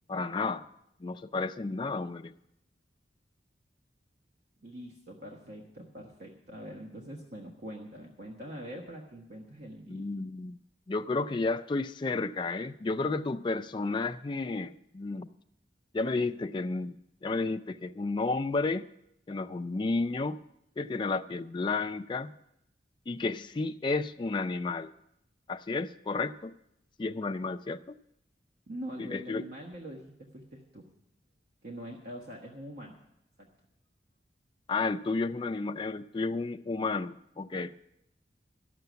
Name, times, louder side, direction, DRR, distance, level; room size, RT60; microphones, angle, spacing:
voice 1, 0.1-0.6 1.0-2.3 9.9-10.6 10.9-15.3 15.9-16.9 17.2-18.9 19.3-20.4 20.8-22.3 23.1-24.9 25.5-26.5 27.0-28.0 29.0-29.5 34.7-37.8, left 3 dB, 25° left, 8 dB, 0.4 m, -32 dB
voice 2, 4.6-10.0 28.7-30.8 31.6-32.9 33.4-33.5, equal, 60° right, 0 dB, 1.4 m, -43 dB
12.5 x 6.8 x 9.2 m, 0.80 s
head